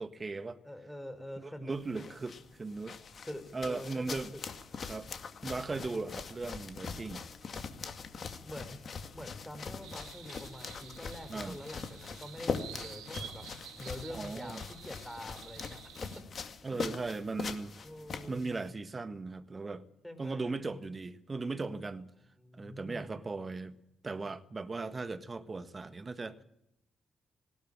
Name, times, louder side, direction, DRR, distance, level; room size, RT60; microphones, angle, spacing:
voice 1, 0.0-0.6 1.4-3.0 3.5-4.3 4.8-5.1 5.4-7.3 11.3-11.6 14.1-14.6 16.6-17.8 18.3-19.9 20.2-22.1 22.6-23.8 24.0-26.4, right 3 dB, 35° right, 1.6 m, -38 dB
voice 2, 0.6-2.1 3.3-4.4 8.4-8.8 9.1-13.5 13.8-16.2 16.6-17.0 17.8-18.5 20.0-20.6 22.4-23.3, left 1 dB, 10° left, 5.0 m, -46 dB
sound 1, 1.7-18.7, left 5 dB, 55° left, 2.1 m, -42 dB
sound 2, 9.8-16.2, right 11 dB, 80° right, 1.4 m, -51 dB
19.0 x 17.0 x 9.0 m
hypercardioid pair, 40°, 0 cm